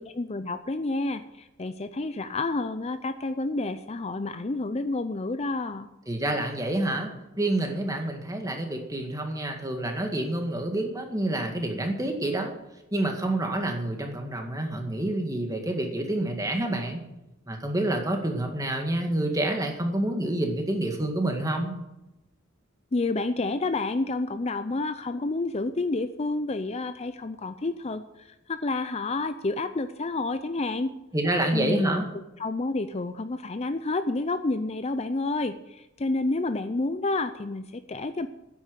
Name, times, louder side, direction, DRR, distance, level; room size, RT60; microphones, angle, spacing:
voice 1, 0.2-5.9 22.9-30.9 31.5-32.0 32.4-38.3, left 2 dB, 30° left, 10 dB, 0.5 m, -29 dB
voice 2, 6.1-7.1 7.4-12.5 12.9-17.0 17.5-21.8 31.1-32.0, right 1 dB, 15° right, 3 dB, 2.0 m, -28 dB
10.0 x 8.5 x 9.5 m, 0.95 s
head